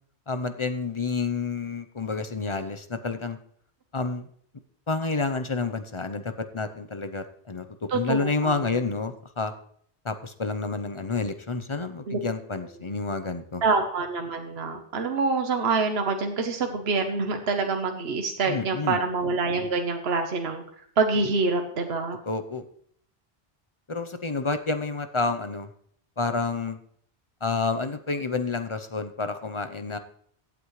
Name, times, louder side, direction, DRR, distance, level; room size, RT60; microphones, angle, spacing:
voice 1, 0.3-3.4 3.9-4.3 4.9-9.5 10.0-13.6 18.5-19.0 22.3-22.6 23.9-25.7 26.2-26.8 27.4-30.0, left 4 dB, 30° left, 10 dB, 0.7 m, -29 dB
voice 2, 7.9-8.7 12.1-12.2 13.6-20.6 21.0-22.2, right 4 dB, 65° right, 5 dB, 1.3 m, -26 dB
16.0 x 8.7 x 3.2 m, 0.62 s
omnidirectional pair, 1.1 m